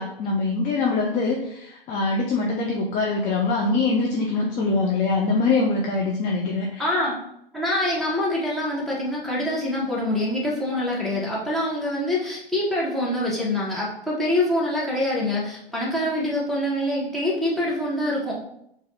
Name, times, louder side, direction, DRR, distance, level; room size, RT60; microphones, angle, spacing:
voice 1, 0.0-6.9, left 3 dB, 25° left, -1 dB, 0.6 m, -23 dB
voice 2, 6.8-7.1 7.5-18.3, left 1 dB, ahead, -6 dB, 1.3 m, -25 dB
5.0 x 2.6 x 4.0 m, 0.74 s
hypercardioid pair, 120°, 30 cm